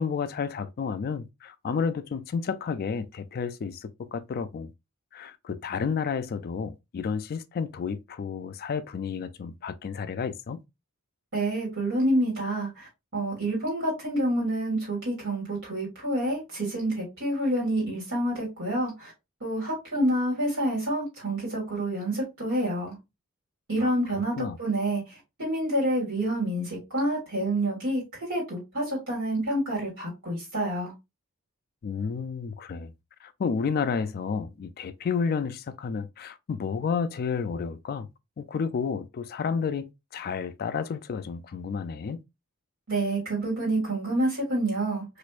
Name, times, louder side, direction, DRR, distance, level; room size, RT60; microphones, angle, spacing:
voice 1, 0.0-4.7 5.1-10.6 23.8-23.9 24.4-24.6 31.8-32.9 33.2-38.1 38.4-42.2, left 6 dB, 45° left, 0.3 m, -31 dB
voice 2, 11.3-19.1 19.4-23.0 23.7-30.9 42.9-45.0, right 1 dB, 60° right, 1.8 m, -28 dB
4.2 x 2.5 x 2.4 m
head